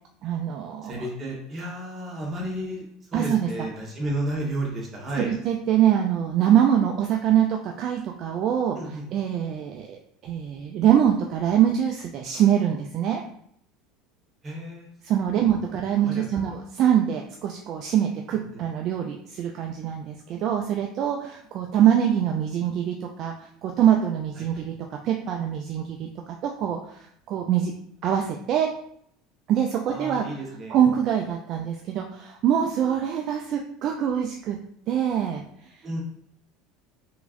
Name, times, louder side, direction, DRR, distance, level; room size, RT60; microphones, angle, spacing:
voice 1, 0.2-1.1 3.1-3.5 5.2-8.8 9.1-13.2 15.0-24.7 25.0-27.7 28.0-28.7 29.5-30.3 30.7-34.6 34.9-35.8, right 9 dB, 55° right, 2 dB, 0.4 m, -24 dB
voice 2, 0.8-2.8 3.1-5.3 8.7-9.0 14.4-14.9 15.3-15.5 16.0-16.5 18.3-18.6 24.4-24.6 29.9-30.8 35.8-36.0, right 1 dB, 30° right, -2 dB, 1.2 m, -32 dB
3.5 x 3.0 x 2.5 m, 0.68 s
hypercardioid pair, 85°, 0 cm